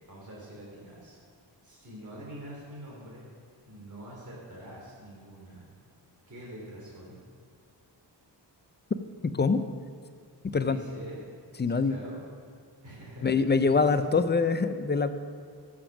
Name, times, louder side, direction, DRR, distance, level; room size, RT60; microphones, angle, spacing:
voice 1, 0.1-1.2 1.6-3.3 3.7-5.6 6.3-7.2 10.6-11.3 11.6-12.2 12.8-14.2, equal, 45° right, -5 dB, 3.1 m, -45 dB
voice 2, 9.2-9.6 10.4-10.8 11.6-12.0 13.2-15.1, left 4 dB, 25° left, 10 dB, 0.5 m, -24 dB
14.0 x 7.1 x 6.0 m, 2.2 s
wide cardioid pair, 125°, 43 cm